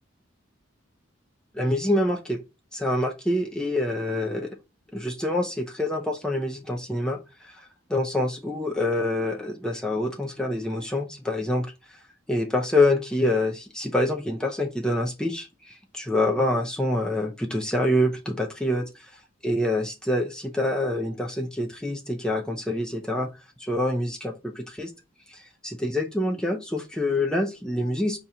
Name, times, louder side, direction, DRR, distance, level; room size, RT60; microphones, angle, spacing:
voice 1, 1.5-2.4 2.7-4.5 4.9-11.7 12.3-18.8 19.4-23.3 23.6-24.9 25.3-28.2, left 1 dB, 5° left, 0.5 m, -26 dB
5.2 x 2.9 x 3.5 m
head